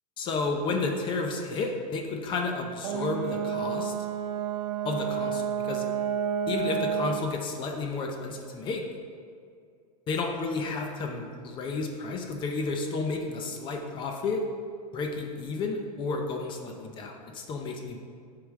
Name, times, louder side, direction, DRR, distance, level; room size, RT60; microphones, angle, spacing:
voice 1, 0.2-3.9 4.8-5.8 6.5-8.9 10.1-14.4 14.9-18.0, left 3 dB, 25° left, 3 dB, 0.6 m, -32 dB
Brass instrument, 2.8-7.3, right 7 dB, 75° right, 0.5 m, -30 dB
8.1 x 4.9 x 3.6 m, 2.3 s
supercardioid pair, 150°, 21 cm